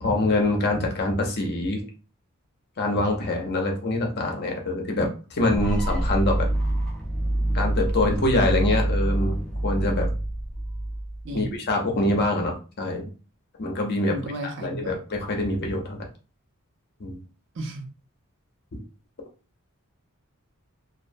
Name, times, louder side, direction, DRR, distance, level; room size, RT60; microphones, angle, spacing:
voice 1, 0.0-1.8 2.8-6.5 7.5-9.4 9.6-10.1 11.3-13.1 13.6-14.1 14.4-16.0 17.0-17.2, left 2 dB, 50° left, 1 dB, 0.6 m, -25 dB
sound 1, 5.6-11.5, right 1 dB, 5° left, 0.6 m, -26 dB
voice 2, 11.2-11.6 14.1-15.0 17.6-17.9, right 1 dB, 60° right, 3 dB, 0.6 m, -34 dB
2.4 x 2.0 x 2.5 m, 0.34 s
head